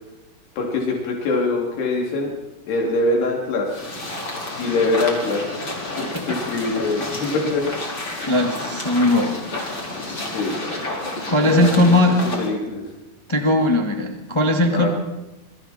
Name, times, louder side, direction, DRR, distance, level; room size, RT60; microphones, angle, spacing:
voice 1, 0.6-2.3 2.7-3.9 4.6-7.7 8.4-8.5 10.2-10.7 10.9-11.0 11.5-11.9 12.2-12.8 14.7-14.9, left 2 dB, 85° left, -1 dB, 5.0 m, -24 dB
sound 1, 3.7-12.5, left 2 dB, 30° left, 5.1 m, -30 dB
voice 2, 8.3-9.4 11.3-12.2 13.3-14.9, left 1 dB, 50° left, 3 dB, 0.3 m, -18 dB
27.5 x 23.5 x 4.4 m, 0.99 s
omnidirectional pair, 4.6 m